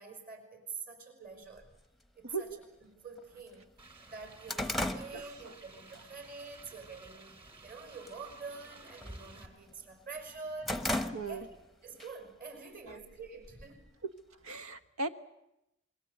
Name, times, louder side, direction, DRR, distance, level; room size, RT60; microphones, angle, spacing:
voice 1, 0.0-1.7 2.2-2.5 2.8-3.7 4.1-7.4 7.6-10.9 11.3-11.5 11.8-14.0, right 4 dB, 45° right, 6 dB, 5.5 m, -46 dB
sound 1, 1.6-1.7 2.6-2.7 3.2-3.3 3.6-6.0 6.4-6.7 7.2-7.7 7.9-8.2 8.5-9.8 10.2-11.7 12.0-12.1 13.0-13.9, left 1 dB, ahead, 0.9 m, -36 dB
voice 2, 2.2-2.6 5.1-5.5 5.9-6.0 11.1-11.5 12.9-13.0 14.0-14.1 14.4-15.1, right 3 dB, 80° right, 10 dB, 1.3 m, -38 dB
sound 2, 3.8-9.5, right 2 dB, 25° right, 3.1 m, -53 dB
26.5 x 22.0 x 8.1 m, 0.86 s
head